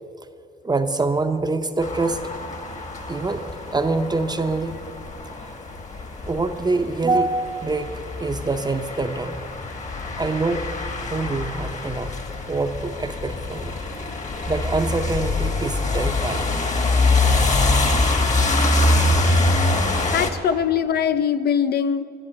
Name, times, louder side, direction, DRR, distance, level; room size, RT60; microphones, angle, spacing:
voice 1, 0.6-2.2 3.1-4.8 5.2-5.6 6.3-9.4 10.2-10.7 11.1-12.2 12.5-13.7 14.5-16.7, right 3 dB, 20° right, 7 dB, 0.6 m, -25 dB
sound 1, 1.8-20.3, left 2 dB, 35° left, 1.3 m, -24 dB
voice 2, 20.1-22.0, left 8 dB, 55° left, 10 dB, 0.4 m, -22 dB
11.5 x 7.2 x 9.6 m, 2.5 s
cardioid pair, 90°, 20 cm